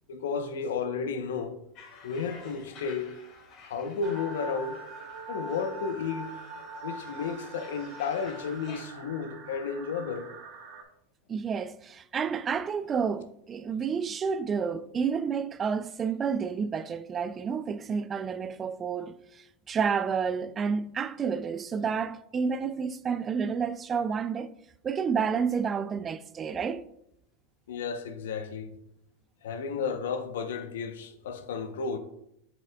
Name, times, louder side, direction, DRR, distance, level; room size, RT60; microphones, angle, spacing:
voice 1, 0.1-1.6 2.0-3.1 3.6-4.8 5.3-6.3 6.8-10.3 27.7-28.7 29.4-32.0, left 5 dB, 80° left, 0.8 m, -33 dB
sound 1, 1.7-8.8, left 4 dB, 50° left, 2.2 m, -52 dB
sound 2, 4.0-10.8, right 3 dB, 55° right, 1.4 m, -43 dB
voice 2, 11.3-24.5 24.8-26.8, right 6 dB, 25° right, 0.3 m, -30 dB
7.2 x 5.9 x 2.3 m
hypercardioid pair, 110°, 0 cm